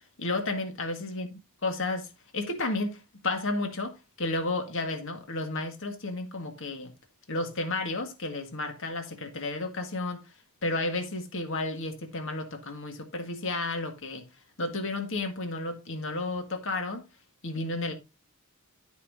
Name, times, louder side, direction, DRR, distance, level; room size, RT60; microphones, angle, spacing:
voice 1, 0.2-1.3 1.6-6.9 7.3-10.3 10.6-14.3 14.6-17.0 17.4-17.9, left 2 dB, 60° left, 1.8 m, -32 dB
14.0 x 5.5 x 2.7 m
head